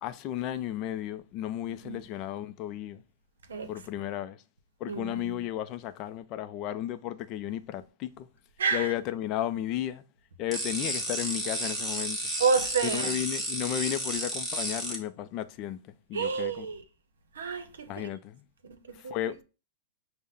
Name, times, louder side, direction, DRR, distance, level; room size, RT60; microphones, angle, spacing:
voice 1, 0.0-3.0 3.7-4.4 4.8-8.3 8.7-10.0 10.4-12.2 12.8-16.7 17.9-18.4 18.9-19.4, left 12 dB, 35° left, 0.4 m, -34 dB
voice 2, 4.9-5.4 8.6-8.9 12.4-13.2 16.1-16.8 17.3-18.1 18.6-19.2, right 5 dB, 90° right, 0.7 m, -30 dB
sound 1, 10.5-15.0, right 1 dB, 5° right, 1.0 m, -32 dB
5.4 x 2.1 x 3.7 m
hypercardioid pair, 140°, 0 cm